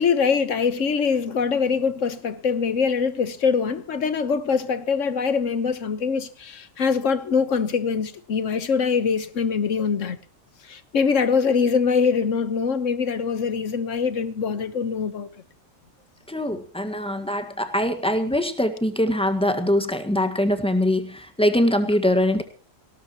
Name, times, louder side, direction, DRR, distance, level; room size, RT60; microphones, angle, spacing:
voice 1, 0.0-10.2 10.7-15.3, left 5 dB, 65° left, 1.5 m, -23 dB
voice 2, 16.3-22.4, left 1 dB, 5° left, 1.6 m, -23 dB
19.0 x 18.0 x 3.0 m
omnidirectional pair, 1.4 m